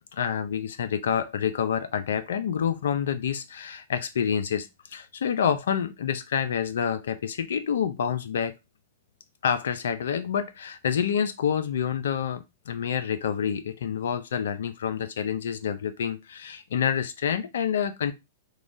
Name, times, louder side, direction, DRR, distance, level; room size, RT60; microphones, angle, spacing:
voice 1, 0.1-8.5 9.4-18.1, left 8 dB, 75° left, 0.4 m, -28 dB
3.0 x 2.2 x 2.6 m
hypercardioid pair, 120°, 0 cm